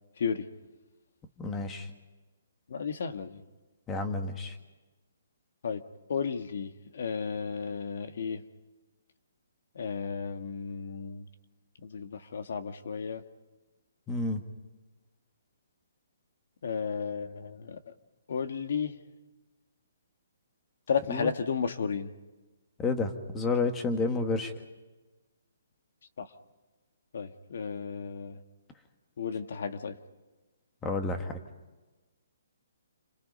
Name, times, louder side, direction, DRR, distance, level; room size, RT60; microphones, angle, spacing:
voice 1, 1.4-1.9 3.9-4.5 14.1-14.4 21.1-21.3 22.8-24.5 30.8-31.4, left 3 dB, 10° left, 6 dB, 1.6 m, -30 dB
voice 2, 2.7-3.4 5.6-5.8 6.1-8.4 9.8-11.3 11.8-13.2 16.6-17.9 18.3-19.0 20.9-22.1 26.2-26.3 27.1-28.4 29.2-30.0, left 6 dB, 55° left, 8 dB, 1.8 m, -33 dB
29.0 x 26.0 x 5.4 m, 1.2 s
hypercardioid pair, 170°, 0 cm